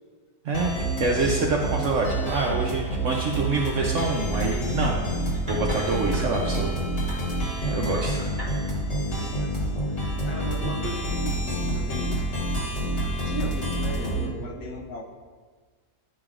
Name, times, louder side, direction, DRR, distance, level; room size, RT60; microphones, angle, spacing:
sound 1, 0.5-14.3, right 1 dB, 50° left, 1.7 m, -28 dB
voice 1, 1.0-5.1 5.5-6.7 7.6-8.2, right 3 dB, 65° right, 0 dB, 0.8 m, -26 dB
sound 2, 3.5-6.2 7.1-7.2 7.9-8.5, equal, 30° right, 1.2 m, -41 dB
voice 2, 9.0-12.2 13.2-15.0, left 1 dB, 70° left, -2 dB, 1.4 m, -37 dB
10.0 x 5.0 x 2.4 m, 1.5 s
omnidirectional pair, 1.8 m